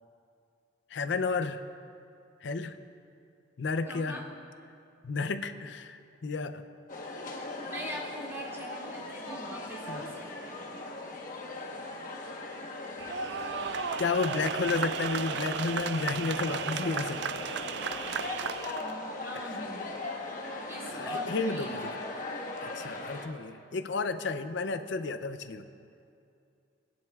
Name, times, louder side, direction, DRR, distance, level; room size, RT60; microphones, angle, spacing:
voice 1, 0.9-1.6 2.4-2.8 3.6-4.2 5.0-6.6 9.9-10.0 14.0-17.2 19.3-19.6 20.4-20.6 20.9-21.9 22.6-25.7, left 4 dB, 65° left, 11 dB, 0.5 m, -32 dB
voice 2, 3.8-4.2 7.6-10.8 18.8-20.0 20.7-22.0, equal, 15° right, -5 dB, 2.3 m, -42 dB
sound 1, 6.9-23.3, left 2 dB, 45° left, 1.1 m, -39 dB
sound 2, 13.0-18.9, right 7 dB, 60° right, 0.4 m, -34 dB
24.5 x 10.5 x 2.4 m, 2.5 s
head